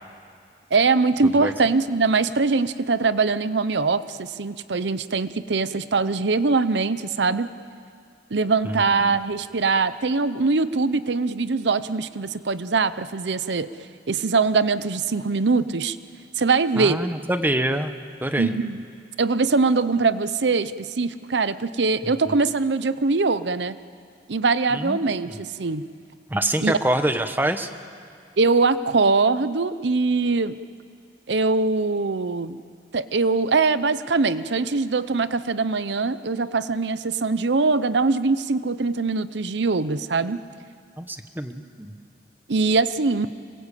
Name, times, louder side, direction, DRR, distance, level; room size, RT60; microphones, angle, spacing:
voice 1, 0.7-7.5 8.3-13.7 14.1-16.0 16.4-17.1 18.4-18.8 19.2-23.8 24.3-25.8 26.6-26.7 28.4-30.6 31.3-32.6 32.9-40.4 42.5-43.3, right 4 dB, 80° right, 14 dB, 0.7 m, -22 dB
voice 2, 16.8-17.9 18.2-18.6 22.0-22.3 24.7-25.4 26.3-27.7 41.0-41.9, right 1 dB, 10° right, 8 dB, 1.1 m, -26 dB
26.0 x 22.0 x 8.4 m, 2.4 s
head